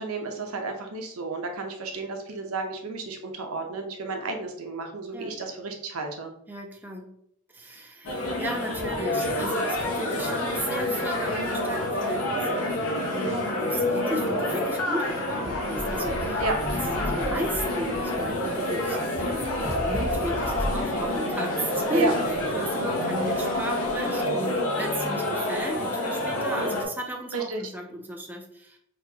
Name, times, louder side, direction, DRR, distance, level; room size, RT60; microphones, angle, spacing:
voice 1, 0.0-6.3 16.4-16.6 21.9-22.1 27.3-27.6, right 3 dB, 85° right, 3 dB, 0.8 m, -32 dB
voice 2, 6.5-7.1 7.5-8.1 8.4-16.4 16.7-28.8, right 1 dB, 10° right, 1 dB, 0.4 m, -34 dB
sound 1, 8.0-26.8, left 1 dB, 80° left, 1.0 m, -28 dB
sound 2, 10.7-25.6, left 1 dB, 60° left, 1.2 m, -45 dB
sound 3, 15.3-21.2, equal, 10° left, 1.4 m, -35 dB
4.2 x 3.1 x 2.8 m, 0.71 s
head